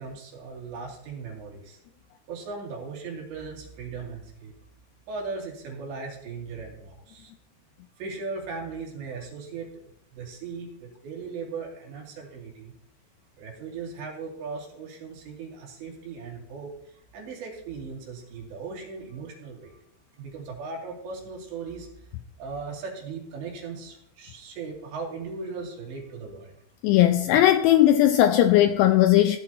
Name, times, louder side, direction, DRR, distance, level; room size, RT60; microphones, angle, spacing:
voice 1, 0.0-1.8 2.3-4.5 5.1-7.3 8.0-9.7 10.1-12.7 13.4-19.8 20.1-21.9 22.4-26.6, right 4 dB, 70° right, 4.7 m, -38 dB
voice 2, 26.8-29.4, left 12 dB, 85° left, 2.4 m, -18 dB
16.5 x 11.5 x 2.9 m
omnidirectional pair, 5.3 m